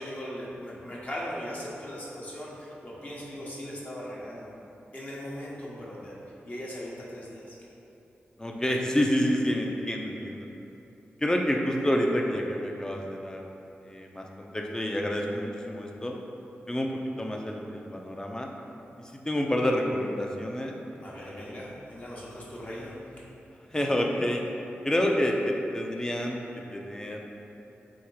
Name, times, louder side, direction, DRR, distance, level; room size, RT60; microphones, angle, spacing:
voice 1, 0.0-4.5 4.9-6.1 6.4-7.6 21.0-22.9, equal, 40° left, -6 dB, 0.9 m, -39 dB
voice 2, 8.4-10.5 11.2-13.4 13.8-16.2 16.7-18.5 19.0-20.7 21.1-21.6 23.7-24.4 24.8-26.4 26.7-27.3, equal, 15° left, 0 dB, 0.5 m, -28 dB
3.6 x 2.6 x 4.6 m, 2.9 s
cardioid pair, 50°, 4 cm